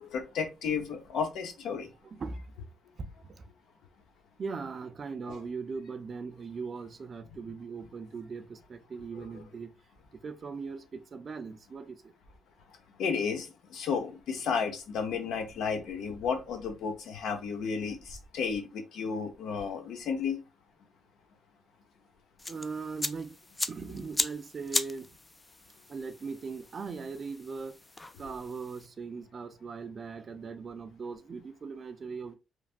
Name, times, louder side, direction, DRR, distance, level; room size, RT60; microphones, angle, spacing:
voice 1, 0.0-1.9 5.3-5.4 9.2-9.3 13.0-20.4, left 6 dB, 80° left, 0.7 m, -33 dB
voice 2, 2.0-2.5 3.0-3.5 4.4-9.7 10.1-12.1 22.5-23.4 23.7-25.1 25.9-27.8 28.2-32.3, right 4 dB, 45° right, 0.4 m, -39 dB
sound 1, 22.4-28.9, left 2 dB, 20° left, 0.3 m, -37 dB
3.2 x 2.2 x 2.4 m
cardioid pair, 90°, 0 cm